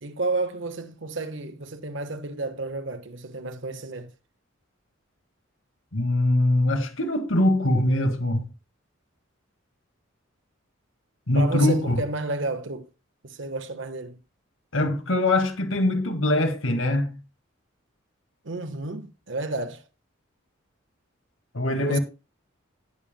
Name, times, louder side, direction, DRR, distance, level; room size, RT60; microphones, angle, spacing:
voice 1, 0.0-4.1 11.3-12.9 13.2-14.2 18.4-19.8 21.8-22.0, right 2 dB, 65° right, 1.3 m, -31 dB
voice 2, 5.9-8.5 11.3-12.0 14.7-17.2 21.5-22.0, left 1 dB, 75° left, 1.9 m, -22 dB
18.0 x 7.2 x 2.2 m
head